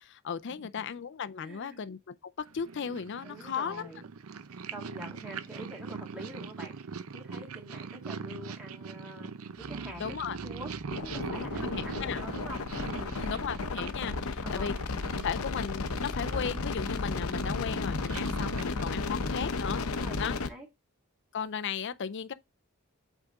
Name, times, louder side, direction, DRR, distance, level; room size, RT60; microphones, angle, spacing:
voice 1, 0.0-3.9 10.0-10.4 11.6-12.2 13.2-14.7 15.2-19.8 20.2-20.4 21.3-22.3, left 6 dB, 55° left, 0.5 m, -36 dB
voice 2, 1.4-1.8 3.2-4.0 4.7-6.8 7.1-9.3 9.6-10.2 10.4-10.7 11.0-13.2 14.4-14.7 19.8-20.7, equal, 5° right, 1.8 m, -45 dB
Purr, 2.5-20.1, right 5 dB, 80° right, 0.6 m, -42 dB
Piano, 9.6-15.9, equal, 20° left, 2.2 m, -54 dB
sound 1, 10.9-20.5, left 3 dB, 80° left, 0.8 m, -33 dB
8.1 x 3.6 x 3.7 m
head